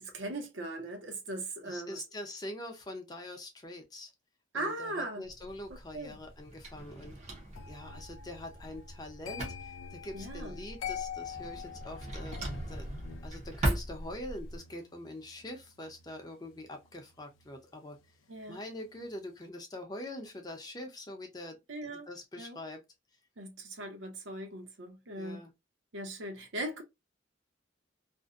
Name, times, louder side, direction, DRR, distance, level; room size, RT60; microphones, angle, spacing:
voice 1, 0.1-2.0 4.5-5.2 5.9-6.2 10.1-10.6 18.3-18.6 21.7-22.1 22.4-22.6 23.4-25.5 25.9-26.8, right 1 dB, 75° right, 0.7 m, -39 dB
voice 2, 1.6-4.1 4.5-7.2 7.7-12.4 12.7-12.9 13.2-18.0 18.5-21.6 21.8-22.8 25.1-25.5, left 1 dB, 20° left, 0.5 m, -44 dB
Drawer open or close, 5.2-14.6, right 1 dB, 35° right, 0.6 m, -39 dB
sound 1, 7.5-18.5 18.8-19.2, left 8 dB, 85° left, 0.3 m, -47 dB
2.5 x 2.1 x 2.3 m
head